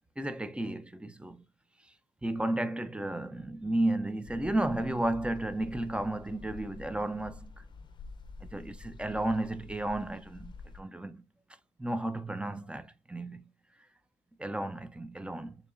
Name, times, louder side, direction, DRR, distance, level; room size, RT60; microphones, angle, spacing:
voice 1, 0.2-1.4 2.2-7.5 8.4-11.2 11.8-13.5 14.4-15.6, right 1 dB, 10° right, 0.6 m, -33 dB
sound 1, 4.2-10.8, left 4 dB, 35° left, 0.7 m, -48 dB
6.9 x 2.9 x 2.6 m
cardioid pair, 95°, 13 cm